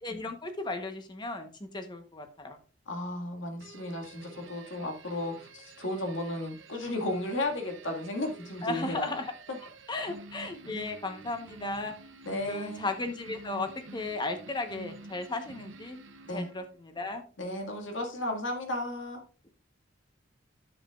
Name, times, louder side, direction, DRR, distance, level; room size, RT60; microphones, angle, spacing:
voice 1, 0.0-2.6 8.6-9.3 9.9-11.9 12.5-16.0 16.3-17.2, left 2 dB, 25° left, 1.1 m, -35 dB
voice 2, 2.9-9.1 12.3-12.8 16.3-16.5 17.4-19.2, left 1 dB, 85° left, 2.0 m, -34 dB
sound 1, 3.6-16.8, right 3 dB, 80° right, 0.9 m, -49 dB
10.5 x 7.4 x 2.5 m
head